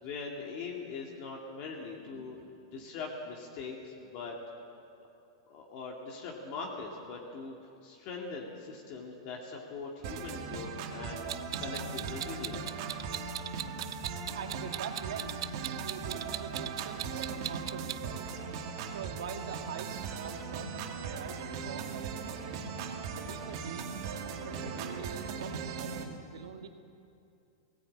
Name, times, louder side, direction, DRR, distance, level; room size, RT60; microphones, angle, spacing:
voice 1, 0.0-2.4 2.7-4.4 5.5-7.5 7.8-12.8, left 4 dB, 45° left, -1 dB, 2.5 m, -41 dB
voice 2, 1.8-2.4 2.7-2.9 14.2-18.3 18.8-22.7 23.1-26.7, right 7 dB, 90° right, 6 dB, 1.7 m, -45 dB
sound 1, 10.0-26.0, right 5 dB, 50° right, 2.4 m, -39 dB
Clock, 11.3-18.0, right 13 dB, 70° right, 0.7 m, -39 dB
18.0 x 17.0 x 8.8 m, 2.5 s
supercardioid pair, 155°, 3 cm